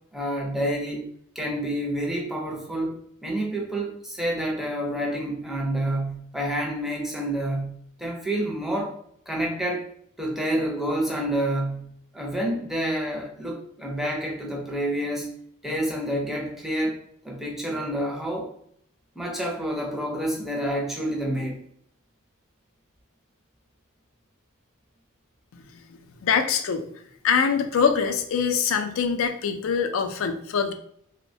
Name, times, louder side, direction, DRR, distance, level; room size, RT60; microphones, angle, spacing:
voice 1, 0.1-1.1 1.4-8.9 9.3-9.9 10.2-11.9 12.1-15.3 15.6-18.5 19.2-21.6, right 1 dB, ahead, -1 dB, 0.5 m, -28 dB
voice 2, 26.2-26.8 27.2-30.7, left 6 dB, 70° left, 7 dB, 0.4 m, -23 dB
3.0 x 2.1 x 2.6 m, 0.67 s
head